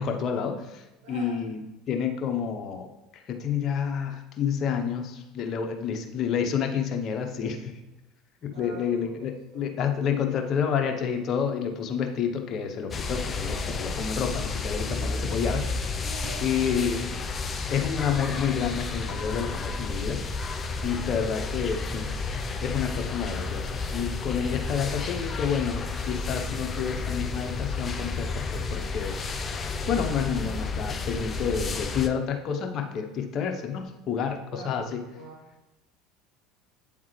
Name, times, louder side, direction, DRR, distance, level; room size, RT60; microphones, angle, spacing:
voice 1, 0.0-1.6 1.9-7.7 8.4-16.0 16.4-17.0 17.7-20.2 20.8-22.1 22.6-29.2 29.9-35.0, left 7 dB, 50° left, 4 dB, 0.9 m, -29 dB
voice 2, 1.0-1.4 8.5-9.3 9.5-9.7 14.8-15.2 16.0-16.5 20.8-21.0 34.5-35.6, right 3 dB, 75° right, -3 dB, 1.3 m, -44 dB
sound 1, 12.9-32.1, left 4 dB, 30° left, 0.5 m, -31 dB
8.7 x 3.6 x 3.2 m, 1.0 s
supercardioid pair, 95°, 0 cm